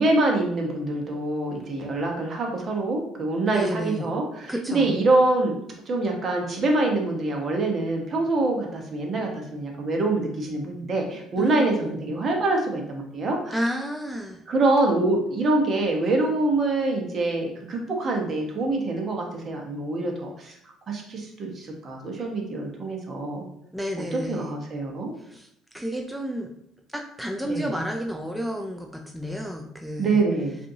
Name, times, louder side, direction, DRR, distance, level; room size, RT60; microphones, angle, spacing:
voice 1, 0.0-5.6 5.9-13.6 14.5-20.5 20.9-23.4 24.0-25.1 27.4-27.7 30.0-30.6, right 2 dB, 45° right, 1 dB, 1.1 m, -25 dB
voice 2, 3.5-4.1 4.5-5.0 11.4-11.9 13.5-14.4 23.7-24.5 25.2-25.5 25.7-26.5 26.9-30.2, equal, 5° right, 2 dB, 0.5 m, -31 dB
5.0 x 2.7 x 2.8 m, 0.73 s
supercardioid pair, 75°, 0 cm